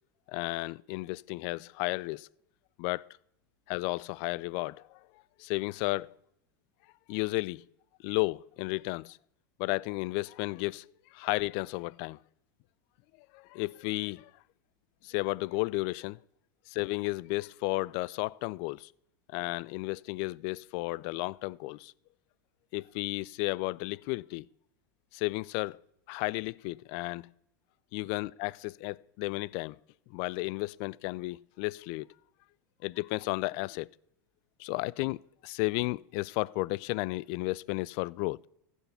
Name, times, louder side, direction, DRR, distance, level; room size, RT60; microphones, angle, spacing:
voice 1, 0.3-2.3 2.8-3.1 3.7-5.0 5.4-6.2 7.1-7.6 8.0-9.2 9.6-12.2 13.3-14.3 15.0-16.2 16.7-18.9 19.3-21.9 22.7-24.5 25.1-25.8 26.1-27.3 27.9-29.8 30.1-32.1 32.8-33.9 34.6-38.4, left 23 dB, 55° left, 0.4 m, -33 dB
15.0 x 7.1 x 5.6 m
hypercardioid pair, 110°, 11 cm